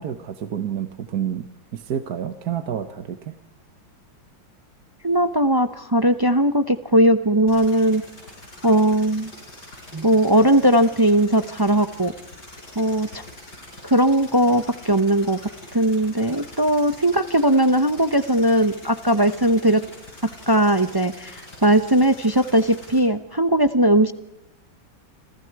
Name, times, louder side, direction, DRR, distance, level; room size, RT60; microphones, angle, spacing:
voice 1, 0.0-3.4, right 9 dB, 55° right, 10 dB, 1.6 m, -29 dB
voice 2, 5.0-8.0 8.6-9.3 9.9-12.1 12.8-13.2 13.8-15.4 15.7-19.8 20.5-24.1, right 1 dB, 35° right, 11 dB, 0.3 m, -19 dB
sound 1, 7.5-23.0, left 1 dB, 60° left, 6.8 m, -44 dB
28.5 x 27.0 x 4.8 m, 0.87 s
omnidirectional pair, 2.0 m